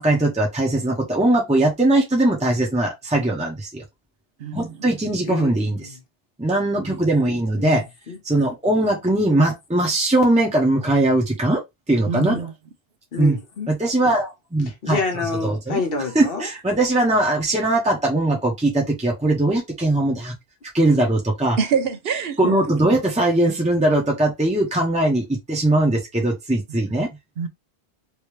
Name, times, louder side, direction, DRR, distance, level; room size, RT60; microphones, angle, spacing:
voice 1, 0.0-3.8 4.5-5.9 6.4-7.8 8.2-11.6 11.9-12.5 13.2-13.4 13.7-15.0 15.4-15.8 16.1-20.3 20.7-21.6 22.4-27.1, right 1 dB, 5° right, 0.9 m, -20 dB
voice 2, 5.3-6.0 7.6-7.8 8.1-8.2 9.3-9.4 13.1-13.7 14.8-16.5, left 4 dB, 65° left, 1.2 m, -28 dB
voice 3, 12.1-12.5 21.6-22.7 27.4-27.5, right 6 dB, 70° right, 0.9 m, -25 dB
3.2 x 2.9 x 3.2 m
omnidirectional pair, 1.1 m